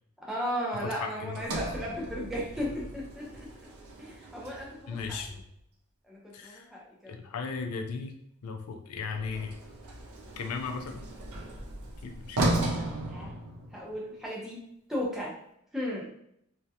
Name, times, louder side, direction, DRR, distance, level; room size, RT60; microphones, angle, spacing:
voice 1, 0.2-3.5 4.0-5.2 6.1-7.3 12.4-13.4 13.7-14.6 14.9-15.3 15.7-16.1, equal, ahead, -4 dB, 0.5 m, -36 dB
voice 2, 0.8-1.4 4.9-5.4 6.3-6.7 7.1-8.1 8.4-9.5 10.4-11.0 12.0-12.5, left 5 dB, 85° left, 4 dB, 0.4 m, -36 dB
Sliding door, 1.3-5.6 9.1-14.0, right 2 dB, 80° right, 0.5 m, -35 dB
2.3 x 2.2 x 2.7 m, 0.73 s
head